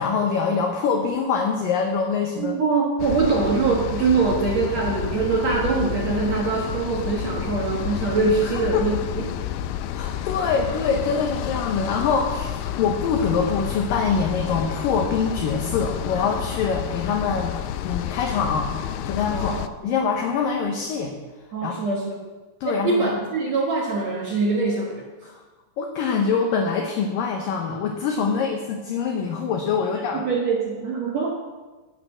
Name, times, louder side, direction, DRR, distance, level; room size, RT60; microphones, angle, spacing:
voice 1, 0.0-2.5 8.4-8.9 9.9-17.5 17.8-18.7 19.0-19.5 19.8-21.2 21.6-21.7 22.6-23.2 25.8-30.2, left 5 dB, 70° left, 2 dB, 2.4 m, -24 dB
voice 2, 2.4-9.4 19.3-19.7 21.5-22.3 22.6-25.3 29.8-31.3, right 4 dB, 55° right, -2 dB, 2.1 m, -23 dB
sound 1, 3.0-19.7, left 11 dB, 90° left, 1.9 m, -30 dB
17.5 x 6.6 x 6.2 m, 1.3 s
omnidirectional pair, 4.6 m